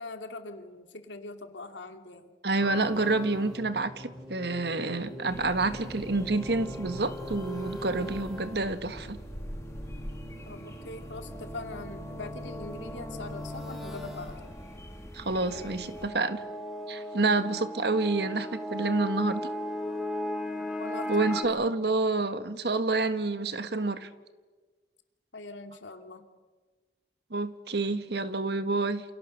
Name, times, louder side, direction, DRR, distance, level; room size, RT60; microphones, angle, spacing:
voice 1, 0.0-2.3 10.5-14.4 20.8-21.6 25.3-26.2, left 3 dB, 85° left, 6 dB, 2.6 m, -42 dB
voice 2, 2.4-9.2 15.1-16.4 16.9-19.5 21.1-24.1 27.3-29.0, right 3 dB, 60° right, 10 dB, 1.5 m, -28 dB
sound 1, 2.6-21.5, equal, ahead, 5.3 m, -39 dB
sound 2, 5.3-16.1, equal, 15° left, 2.2 m, -45 dB
28.5 x 28.0 x 6.6 m, 1.4 s
head